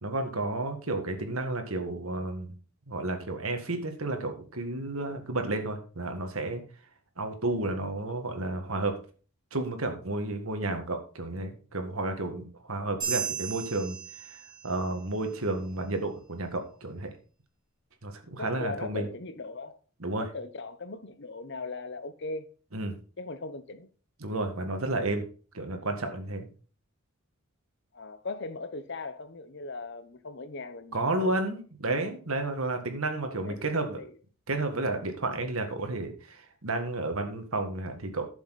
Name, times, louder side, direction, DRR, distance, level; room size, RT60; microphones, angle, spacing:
voice 1, 0.0-2.5 2.9-6.6 7.2-9.0 9.5-14.0 14.3-14.4 14.6-17.1 18.0-19.1 20.0-20.3 22.7-23.0 24.2-25.2 25.5-26.5 30.9-34.0 34.5-38.3, right 2 dB, 90° right, 1.9 m, -31 dB
sound 1, 13.0-14.9, right 7 dB, 20° right, 5.0 m, -35 dB
voice 2, 18.4-19.8 20.2-22.5 23.2-23.9 27.9-31.3 33.3-33.6 34.0-34.1, left 3 dB, 55° left, 0.9 m, -39 dB
11.5 x 7.1 x 4.2 m
head